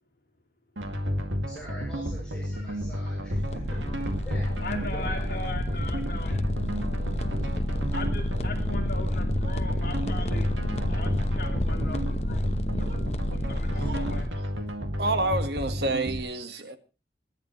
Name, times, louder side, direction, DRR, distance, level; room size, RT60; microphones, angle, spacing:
sound 1, 0.8-16.2, equal, 90° right, 2.2 m, -32 dB
voice 1, 1.5-5.3, equal, 5° left, -6 dB, 6.7 m, -45 dB
sound 2, 3.3-14.3, left 1 dB, 35° left, 0.8 m, -30 dB
voice 2, 4.6-6.4 7.9-10.5 10.9-12.5 12.8-13.0 13.5-14.3, left 3 dB, 50° left, 3 dB, 2.5 m, -39 dB
voice 3, 13.7-14.0 15.0-16.8, right 2 dB, 65° right, 9 dB, 1.5 m, -29 dB
25.5 x 10.5 x 3.1 m, 0.32 s
head